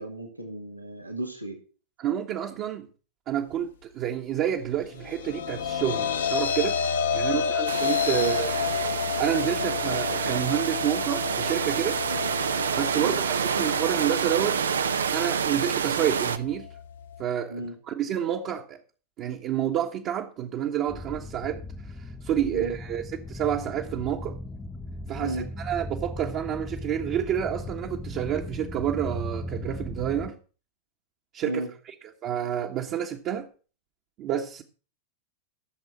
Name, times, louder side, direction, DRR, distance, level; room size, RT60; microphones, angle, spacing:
voice 1, 0.0-1.6 8.2-8.3 12.1-12.3 12.9-13.2 17.5-17.8 22.5-22.8 25.2-25.5 31.4-31.7, right 1 dB, 85° right, 2.3 m, -35 dB
voice 2, 2.0-2.9 3.3-6.8 7.1-8.5 9.2-12.0 12.8-14.6 15.1-16.7 17.2-18.8 19.2-21.6 22.0-24.4 25.1-30.4 31.3-31.6 32.2-33.5 34.2-34.6, right 10 dB, 35° right, 1.4 m, -29 dB
sound 1, 4.9-17.2, left 7 dB, 65° left, 1.6 m, -31 dB
sound 2, 7.7-16.4, right 7 dB, 70° right, 0.9 m, -28 dB
sound 3, 20.9-30.3, left 1 dB, 10° left, 0.9 m, -37 dB
15.0 x 7.5 x 6.0 m
figure-of-eight pair, 90°, 0 cm